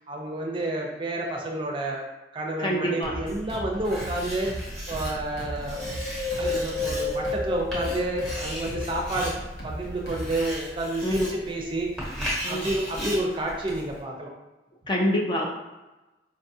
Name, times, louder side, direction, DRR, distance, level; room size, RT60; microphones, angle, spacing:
voice 1, 0.1-2.0 2.3-4.5 4.9-5.8 6.4-9.3 9.6-11.9 12.5-14.3, right 2 dB, 30° right, -1 dB, 0.5 m, -30 dB
voice 2, 2.6-3.2 11.0-11.3 12.4-12.7 14.9-15.5, equal, 25° left, -1 dB, 0.4 m, -26 dB
sound 1, 3.0-10.5, right 1 dB, 85° left, 0.9 m, -37 dB
Writing, 3.8-14.0, equal, ahead, 0.9 m, -37 dB
Wind, 5.7-9.3 9.8-11.1 11.6-11.7, left 3 dB, 50° left, 1.0 m, -32 dB
4.6 x 2.3 x 2.7 m, 1.1 s
head